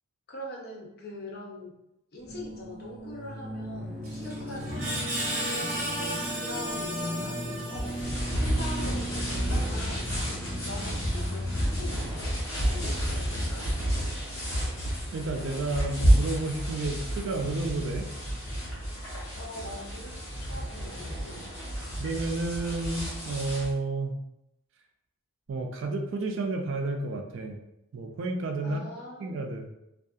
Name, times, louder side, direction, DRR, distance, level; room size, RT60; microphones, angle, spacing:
voice 1, 0.3-1.7 2.1-4.9 6.4-8.0 8.3-10.0 10.5-13.6 19.3-21.5 28.6-29.5, left 1 dB, 45° left, -1 dB, 0.6 m, -42 dB
sound 1, 2.2-12.2, equal, ahead, 0.5 m, -37 dB
Screech, 4.0-8.3, right 1 dB, 40° right, 0.7 m, -34 dB
sound 2, 7.7-23.7, equal, 70° left, 1.0 m, -30 dB
voice 2, 15.1-18.1 22.0-24.2 25.5-27.6 27.9-28.8 29.2-29.7, right 3 dB, 60° right, 4 dB, 0.3 m, -31 dB
2.6 x 2.3 x 2.3 m, 0.84 s
head